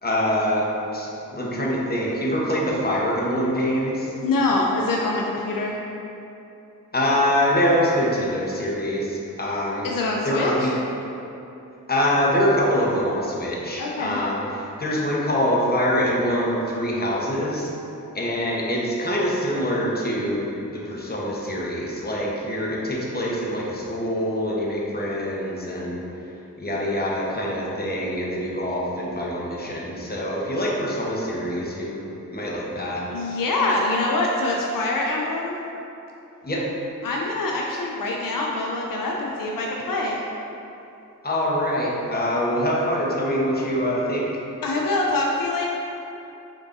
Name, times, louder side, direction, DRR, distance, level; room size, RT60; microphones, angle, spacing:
voice 1, 0.0-0.7 0.9-4.1 6.9-9.9 10.2-10.7 11.9-17.7 18.1-26.0 26.6-32.0 32.3-33.0 36.4-36.6 41.2-44.2, equal, 30° left, -4 dB, 1.0 m, -24 dB
voice 2, 4.2-5.8 9.8-10.7 13.8-14.2 33.1-35.6 37.0-40.2 44.6-45.6, left 2 dB, 75° left, -1 dB, 0.5 m, -24 dB
5.2 x 3.5 x 2.6 m, 2.9 s
cardioid pair, 50°, 33 cm